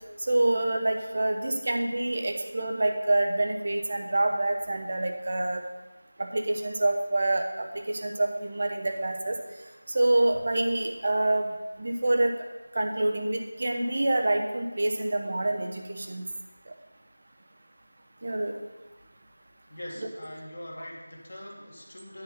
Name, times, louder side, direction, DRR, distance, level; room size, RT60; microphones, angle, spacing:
voice 1, 0.3-5.6 6.2-9.4 9.9-11.5 11.8-12.3 12.7-16.2 18.2-18.5, right 2 dB, 40° right, 3 dB, 1.0 m, -26 dB
voice 2, 19.7-22.2, left 1 dB, 55° left, -1 dB, 2.0 m, -42 dB
9.8 x 4.4 x 7.0 m, 1.2 s
figure-of-eight pair, 170°, 0 cm